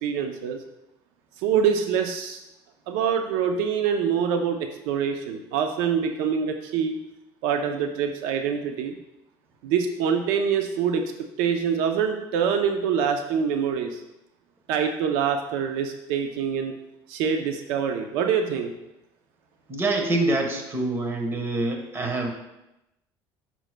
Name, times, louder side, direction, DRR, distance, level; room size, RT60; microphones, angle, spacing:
voice 1, 0.0-0.6 1.4-2.4 2.9-7.0 7.4-8.9 9.6-11.1 11.4-14.0 14.7-16.7 17.1-18.7, right 7 dB, 85° right, 5 dB, 0.6 m, -25 dB
voice 2, 19.7-22.3, right 2 dB, 25° right, 3 dB, 1.2 m, -25 dB
9.0 x 6.1 x 2.2 m, 0.91 s
cardioid pair, 115°, 9 cm